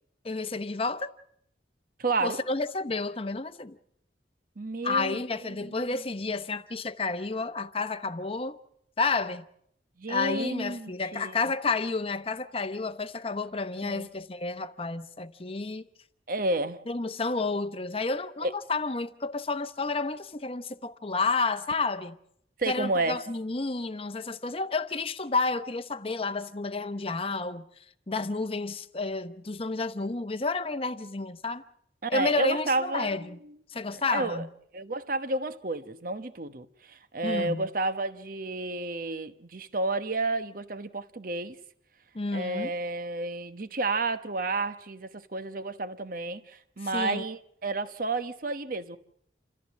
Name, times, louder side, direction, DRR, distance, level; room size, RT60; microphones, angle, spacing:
voice 1, 0.2-1.1 2.2-3.8 4.8-8.6 9.0-9.5 10.1-15.9 16.9-22.2 22.7-27.7 28.1-31.6 32.1-33.4 33.7-34.5 37.2-37.7 42.1-42.7 46.8-47.2, left 3 dB, 30° left, 0.8 m, -30 dB
voice 2, 2.0-2.4 4.6-5.2 5.5-5.7 10.0-11.4 13.8-14.1 16.3-16.8 18.4-18.5 22.6-23.2 32.0-33.5 33.9-34.5 34.7-41.6 42.3-49.0, right 2 dB, 50° right, 1.0 m, -31 dB
28.5 x 14.5 x 7.4 m
head